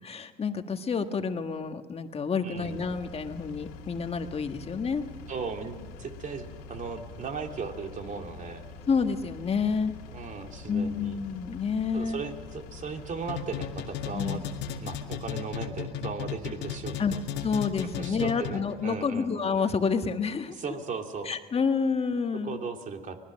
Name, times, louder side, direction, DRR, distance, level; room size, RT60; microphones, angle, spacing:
voice 1, 0.0-5.0 8.9-9.9 10.7-12.2 14.1-14.4 17.0-17.1 17.4-20.5 21.2-22.6, left 5 dB, 30° left, 7 dB, 1.7 m, -29 dB
voice 2, 2.4-2.8 5.3-8.6 10.1-11.2 11.9-14.4 14.8-17.2 18.0-19.3 20.6-21.3 22.4-23.2, right 5 dB, 45° right, 4 dB, 2.7 m, -37 dB
Engine, 2.5-15.2, left 3 dB, 90° left, 2.6 m, -45 dB
sound 1, 13.3-18.8, left 9 dB, 70° left, 2.0 m, -35 dB
24.5 x 19.0 x 6.5 m, 1.4 s
supercardioid pair, 80°, 19 cm